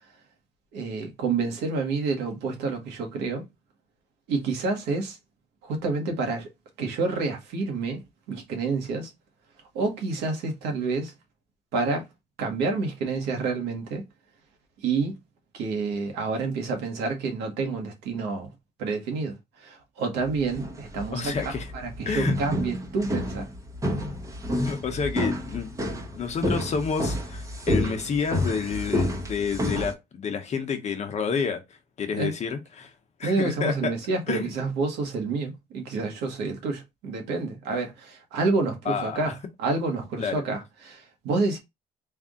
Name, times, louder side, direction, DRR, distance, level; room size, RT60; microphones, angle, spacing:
voice 1, 0.7-3.4 4.3-5.2 5.6-6.5 6.8-8.0 8.3-9.1 9.7-11.1 11.7-12.1 12.4-14.0 14.8-15.2 15.5-18.5 18.8-21.3 21.7-23.5 32.2-32.3 33.2-41.6, right 3 dB, 90° right, 1.4 m, -28 dB
sound 1, 20.3-29.9, equal, 20° right, 0.9 m, -29 dB
voice 2, 21.1-21.7 22.1-22.4 24.6-25.7 26.2-32.9 33.2-34.0 34.3-34.5 38.9-39.3 40.2-40.4, left 6 dB, 40° left, 0.9 m, -29 dB
3.5 x 2.6 x 3.6 m
cardioid pair, 110°, 17 cm